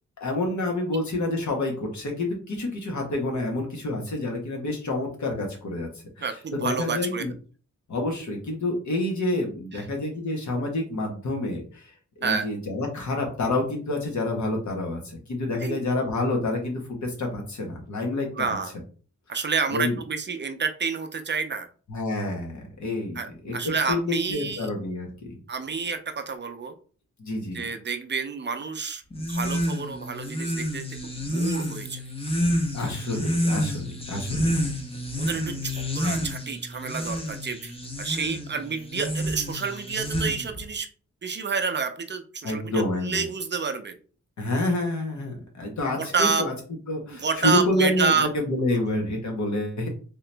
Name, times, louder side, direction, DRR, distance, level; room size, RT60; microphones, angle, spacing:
voice 1, 0.2-7.3 7.9-18.3 19.7-20.0 21.9-23.6 23.9-25.4 27.2-27.7 32.7-34.5 42.4-43.3 44.4-46.5 46.9-49.9, left 2 dB, 75° left, 1 dB, 1.3 m, -28 dB
voice 2, 6.2-7.2 12.2-12.5 15.6-15.8 18.4-18.7 19.3-21.7 23.2-24.7 25.5-26.8 27.5-29.0 29.3-32.0 35.2-40.9 41.2-43.9 46.0-46.5 47.1-48.3, right 5 dB, 40° right, 8 dB, 0.5 m, -29 dB
sound 1, 29.1-40.6, equal, 20° left, 0.7 m, -29 dB
3.7 x 2.9 x 3.3 m, 0.40 s
wide cardioid pair, 140°, 29 cm